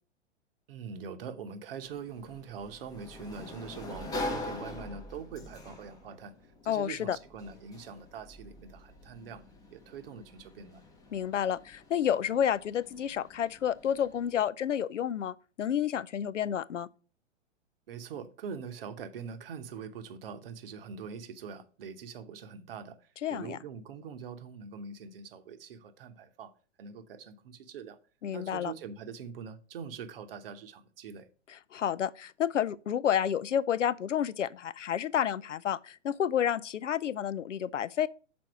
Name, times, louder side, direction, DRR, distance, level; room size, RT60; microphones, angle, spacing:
voice 1, 0.7-6.3 6.6-9.4 9.7-10.8 17.9-23.0 23.3-26.5 26.8-28.0 28.3-31.3, right 6 dB, 50° right, 0.9 m, -43 dB
Sliding door, 1.8-14.5, left 2 dB, 10° left, 0.7 m, -44 dB
voice 2, 6.7-7.2 11.1-16.9 23.2-23.6 28.2-28.7 31.5-38.1, left 9 dB, 75° left, 0.5 m, -30 dB
6.2 x 4.2 x 5.8 m
figure-of-eight pair, 110°, 37 cm